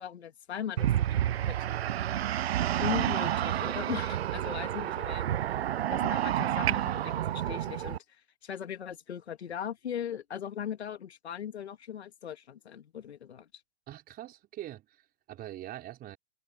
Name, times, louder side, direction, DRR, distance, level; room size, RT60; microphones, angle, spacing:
voice 1, 0.0-1.7 2.8-5.6 5.9-8.0 8.4-13.5, left 9 dB, 75° left, 2.9 m, -39 dB
sound 1, 0.8-8.0, right 11 dB, 70° right, 0.9 m, -29 dB
voice 2, 13.9-16.2, right 13 dB, 30° right, 5.2 m, -43 dB
hypercardioid pair, 125°, 32 cm